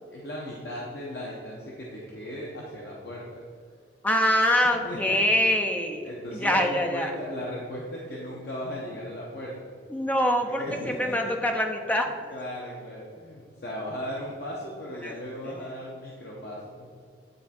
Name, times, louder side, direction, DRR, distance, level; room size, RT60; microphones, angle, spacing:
voice 1, 0.1-3.2 4.6-5.2 6.0-9.7 10.6-11.4 12.3-16.9, equal, 60° left, -4 dB, 1.0 m, -37 dB
voice 2, 4.0-7.1 9.9-12.1 15.0-15.1 15.4-15.5, equal, 10° left, 3 dB, 0.5 m, -25 dB
9.4 x 3.6 x 4.3 m, 2.2 s
head